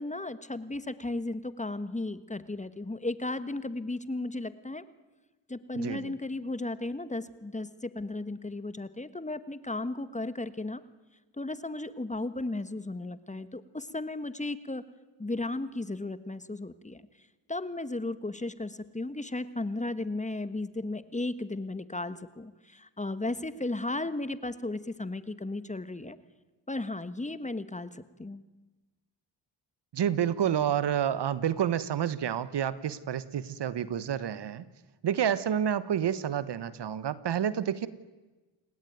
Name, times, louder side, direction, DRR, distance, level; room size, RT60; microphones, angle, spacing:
voice 1, 0.0-4.8 5.5-10.8 11.4-14.8 15.2-17.0 17.5-26.2 26.7-28.4, left 2 dB, 15° left, 14 dB, 1.5 m, -35 dB
voice 2, 5.7-6.1 29.9-34.6 35.0-37.9, right 9 dB, 60° right, 16 dB, 1.4 m, -29 dB
29.5 x 19.5 x 9.4 m, 1.2 s
cardioid pair, 70°, 47 cm